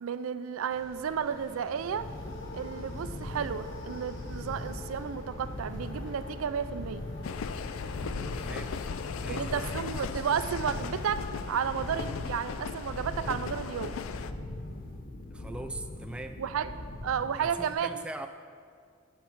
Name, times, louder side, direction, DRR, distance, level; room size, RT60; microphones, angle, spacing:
voice 1, 0.0-2.1 2.5-7.0 9.3-14.0 16.4-16.7 17.0-18.0, right 7 dB, 85° right, 12 dB, 0.4 m, -32 dB
sound 1, 0.7-13.9, left 1 dB, 65° left, 1.2 m, -52 dB
sound 2, 1.7-17.7, left 1 dB, 45° left, 0.7 m, -41 dB
sound 3, 7.2-14.3, left 6 dB, 80° left, 0.4 m, -37 dB
voice 2, 8.3-8.8 9.2-9.5 15.3-16.4 17.4-18.3, right 1 dB, 5° right, 6 dB, 0.3 m, -40 dB
8.0 x 7.5 x 4.6 m, 2.1 s
head